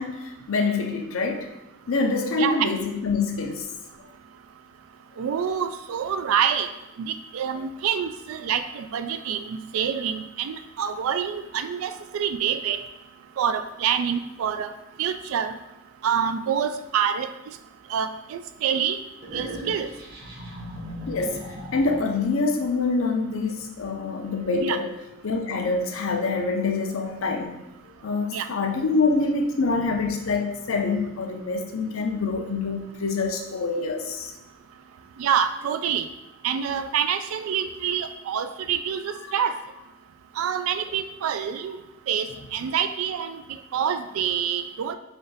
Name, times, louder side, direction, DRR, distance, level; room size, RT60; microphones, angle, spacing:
voice 1, 0.0-1.5 1.9-3.7 21.1-21.4 21.7-24.9 25.2-27.6 28.0-34.3, left 3 dB, 80° left, 3 dB, 0.6 m, -26 dB
voice 2, 2.4-2.8 5.2-6.7 7.0-12.8 13.4-14.7 15.0-15.5 16.0-17.3 17.9-19.0 19.3-19.9 24.6-24.8 28.3-28.5 35.2-36.1 36.4-39.5 40.4-41.8 42.1-43.4 43.7-45.0, right 8 dB, 85° right, 9 dB, 0.3 m, -26 dB
sound 1, 19.2-22.3, equal, 50° right, 1.0 m, -37 dB
3.4 x 2.6 x 3.9 m, 0.97 s
head